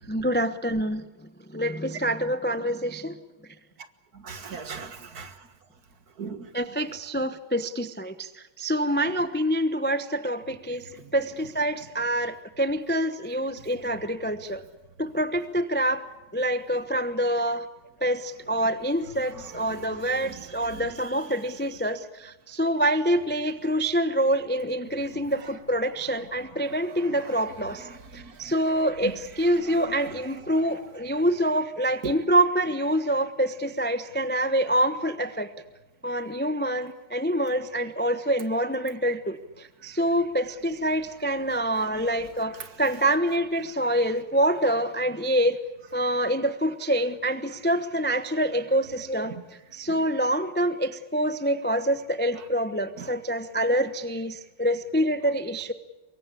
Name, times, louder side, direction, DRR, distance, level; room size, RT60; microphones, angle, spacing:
voice 1, 0.1-1.0 1.5-3.1 6.5-14.6 15.0-16.0 16.3-17.7 18.0-35.5 36.0-45.6 45.9-49.4 49.7-55.7, right 1 dB, 15° left, 11 dB, 0.4 m, -26 dB
voice 2, 4.1-5.5 6.2-6.5 10.9-11.1 19.2-21.2 25.1-25.5 26.6-28.5 29.0-29.1 29.6-30.0 30.7-30.8 32.0-32.2 41.7-42.1 42.6-42.7 49.3-49.4 52.4-52.5 53.0-53.1, right 6 dB, 50° right, 10 dB, 2.0 m, -41 dB
24.0 x 23.0 x 8.4 m, 1.1 s
omnidirectional pair, 2.2 m